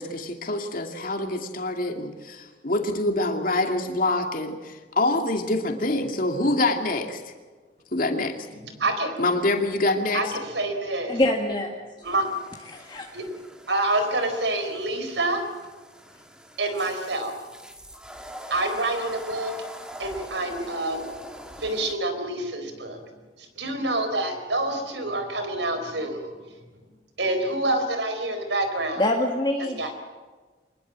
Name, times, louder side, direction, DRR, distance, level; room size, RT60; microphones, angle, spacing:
voice 1, 0.0-7.2 7.9-8.3 9.2-10.2, left 2 dB, 50° left, 4 dB, 2.6 m, -25 dB
voice 2, 8.6-9.2 10.1-11.2 12.0-12.3 13.1-13.2 13.7-15.4 16.6-17.4 18.5-19.5 20.0-21.1 21.6-23.0 23.4-26.3 27.2-29.0 29.8-29.9, right 2 dB, 80° right, 8 dB, 4.5 m, -27 dB
voice 3, 11.1-11.7 12.7-13.1 29.0-29.9, left 1 dB, 25° left, 1 dB, 1.8 m, -25 dB
sound 1, 12.0-21.9, equal, 5° right, 2.0 m, -43 dB
24.5 x 21.0 x 7.6 m, 1.4 s
head